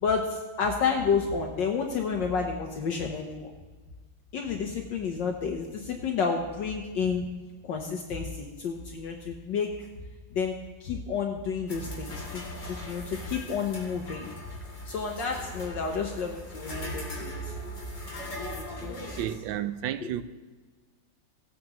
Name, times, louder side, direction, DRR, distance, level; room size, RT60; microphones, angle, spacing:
voice 1, 0.0-3.5 4.3-7.3 7.6-9.9 10.3-10.5 10.8-14.3 14.9-17.5 18.5-19.2 20.0-20.1, left 5 dB, 65° left, 1.5 m, -30 dB
sound 1, 11.7-19.3, equal, 40° left, 2.8 m, -39 dB
voice 2, 19.1-20.2, right 11 dB, 75° right, 1.2 m, -32 dB
18.0 x 9.2 x 3.1 m
omnidirectional pair, 2.2 m